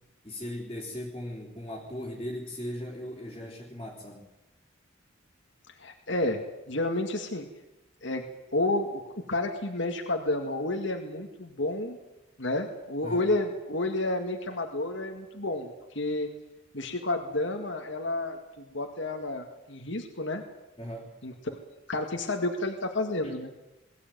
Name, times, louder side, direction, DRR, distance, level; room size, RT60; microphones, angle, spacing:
voice 1, 0.2-4.3 13.0-13.3 20.8-21.2 23.2-23.4, left 1 dB, 25° left, -4 dB, 3.5 m, -38 dB
voice 2, 5.8-7.5 8.0-8.3 8.5-9.0 9.3-12.0 12.4-16.3 16.7-20.4 21.2-21.6 21.9-23.5, left 2 dB, 65° left, 3 dB, 2.1 m, -30 dB
22.0 x 15.0 x 9.3 m, 0.98 s
head